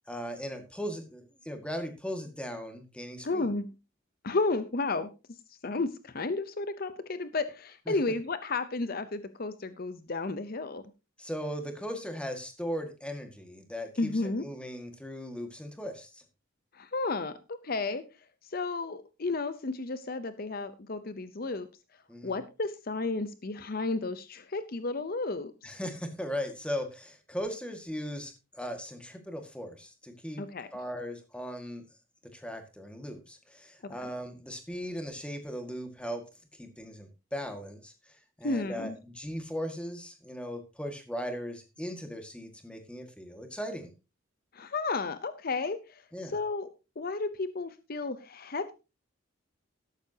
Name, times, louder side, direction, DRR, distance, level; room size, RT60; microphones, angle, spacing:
voice 1, 0.1-3.5 7.9-8.0 11.2-16.2 22.1-22.4 25.6-30.4 30.7-31.8 32.3-36.2 36.6-37.9 38.4-43.9 46.1-46.3, equal, 5° left, 5 dB, 1.9 m, -38 dB
voice 2, 3.2-3.7 4.2-5.1 5.6-10.8 14.0-14.4 16.7-18.0 18.5-21.7 22.2-25.5 30.4-30.7 33.8-34.0 38.4-39.0 44.5-46.7 47.0-48.7, left 3 dB, 50° left, 12 dB, 0.7 m, -32 dB
13.0 x 11.5 x 2.8 m, 0.29 s
head